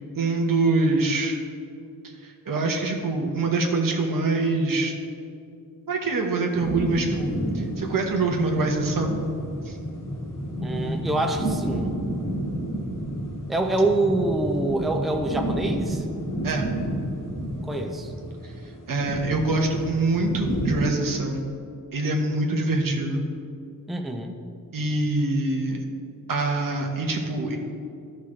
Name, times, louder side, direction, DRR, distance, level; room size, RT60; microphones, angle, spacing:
voice 1, 0.1-1.4 2.0-4.9 5.9-9.2 9.6-9.8 16.4-16.7 18.9-21.5 21.9-23.3 24.7-25.8 26.3-27.6, right 2 dB, 70° right, 1 dB, 1.2 m, -25 dB
sound 1, 6.5-20.9, right 1 dB, 65° left, 1.9 m, -30 dB
voice 2, 10.6-12.0 13.5-16.0 17.6-18.1 23.9-24.4, right 2 dB, ahead, 3 dB, 0.6 m, -26 dB
13.5 x 5.7 x 3.3 m, 2.5 s
wide cardioid pair, 105°, 34 cm